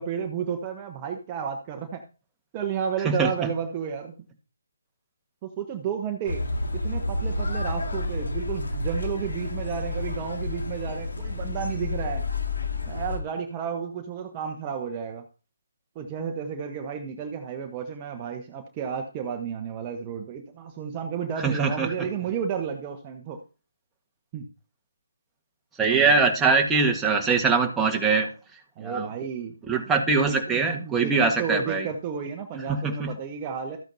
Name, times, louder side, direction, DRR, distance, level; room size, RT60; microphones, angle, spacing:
voice 1, 0.0-2.0 2.5-4.1 5.4-6.4 6.7-12.2 12.8-15.2 15.9-23.4 24.3-24.5 25.8-26.2 28.8-29.6 29.9-33.8, right 7 dB, 25° right, 3 dB, 1.1 m, -32 dB
sound 1, 6.2-13.2, left 2 dB, 70° left, 2.1 m, -30 dB
voice 2, 21.4-21.9 25.8-28.3 28.8-29.1 29.7-31.9 32.7-33.1, right 4 dB, 10° right, 1 dB, 1.5 m, -22 dB
13.5 x 8.9 x 2.8 m, 0.35 s
figure-of-eight pair, 145°, 0 cm